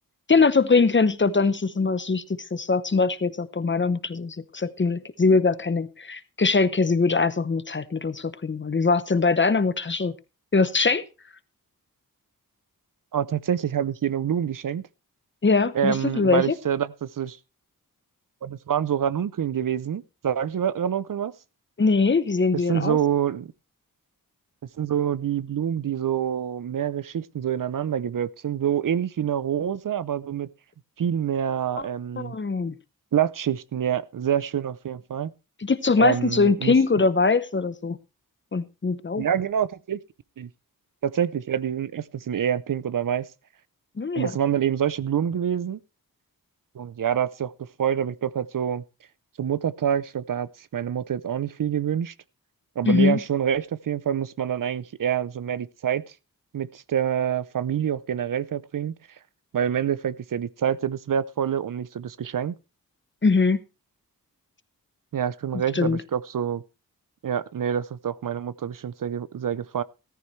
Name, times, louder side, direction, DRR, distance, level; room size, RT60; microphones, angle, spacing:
voice 1, 0.3-2.2 2.5-10.2 10.5-11.0 15.4-16.5 21.8-23.0 31.8-31.9 32.2-32.7 35.6-38.0 38.5-39.2 44.0-44.3 52.9-53.2 63.2-63.6 65.7-66.0, left 4 dB, 30° left, 0.8 m, -22 dB
voice 2, 13.1-14.8 15.7-17.4 18.4-21.3 22.7-23.5 24.8-30.5 31.0-32.3 33.1-35.3 36.0-36.7 39.2-40.0 40.4-40.5 41.0-43.3 44.2-45.8 46.8-47.5 47.8-48.8 49.4-52.1 52.8-56.0 56.5-58.9 59.5-62.5 65.1-66.6 67.2-69.8, right 9 dB, 65° right, 0.6 m, -26 dB
14.0 x 14.0 x 3.2 m
wide cardioid pair, 90°, 36 cm